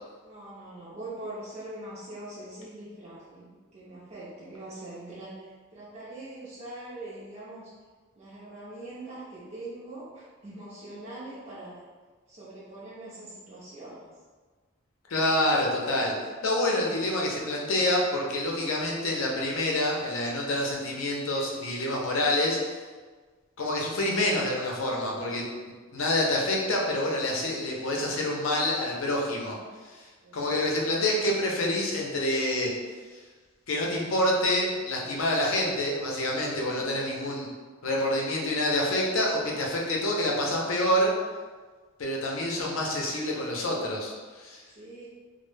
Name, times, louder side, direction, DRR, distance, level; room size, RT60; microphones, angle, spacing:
voice 1, 0.2-7.7 8.2-11.8 12.3-14.1 30.2-31.0 36.7-37.1 44.8-45.1, right 2 dB, 35° right, -9 dB, 0.4 m, -43 dB
voice 2, 15.1-16.1 16.4-22.6 23.6-25.5 25.9-29.6 29.9-30.0 30.3-32.7 33.7-37.5 37.8-41.1 42.0-44.6, left 1 dB, 85° left, -2 dB, 0.5 m, -27 dB
2.1 x 2.0 x 3.1 m, 1.4 s
head